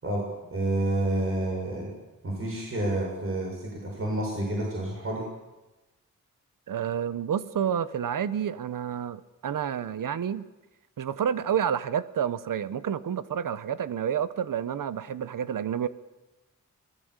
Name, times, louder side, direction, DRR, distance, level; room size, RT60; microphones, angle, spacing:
voice 1, 0.5-1.9 2.2-5.2, right 1 dB, 40° right, -2 dB, 7.1 m, -29 dB
voice 2, 6.7-10.5 11.0-15.9, right 8 dB, 80° right, 14 dB, 1.1 m, -29 dB
26.5 x 18.5 x 8.2 m, 1.1 s
wide cardioid pair, 130°, 32 cm